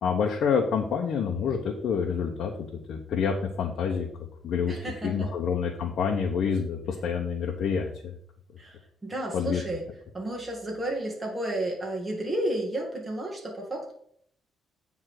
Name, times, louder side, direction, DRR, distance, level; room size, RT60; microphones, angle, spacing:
voice 1, 0.0-2.5 2.9-4.1 4.4-4.8 5.0-8.1 9.3-9.6, left 6 dB, 75° left, 1 dB, 1.0 m, -27 dB
voice 2, 4.7-5.3 8.6-9.8 10.1-13.9, right 1 dB, 15° right, -3 dB, 2.1 m, -32 dB
9.0 x 3.6 x 6.4 m, 0.65 s
cardioid pair, 110°, 0 cm